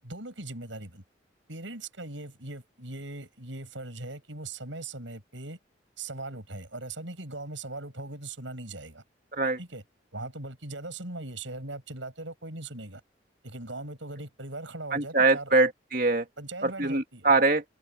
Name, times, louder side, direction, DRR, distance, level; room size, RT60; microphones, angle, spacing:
voice 1, 0.0-1.0 1.5-5.6 6.0-9.0 9.6-9.8 10.1-13.0 13.4-15.5 16.4-17.3, right 2 dB, 85° right, 7.8 m, -39 dB
voice 2, 14.9-16.3 16.6-17.6, right 3 dB, 45° right, 2.2 m, -23 dB
open air
head